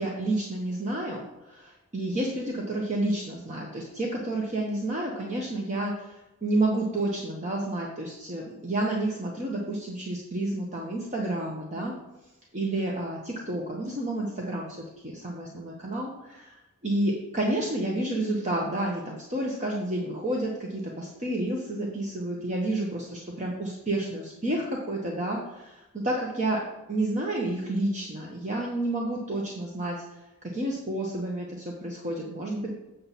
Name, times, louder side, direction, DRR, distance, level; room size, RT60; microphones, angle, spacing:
voice 1, 0.0-11.9 12.5-14.7 15.0-26.6 26.9-30.0 30.5-32.7, right 1 dB, 35° right, -2 dB, 1.2 m, -30 dB
7.6 x 6.9 x 4.2 m, 0.96 s
head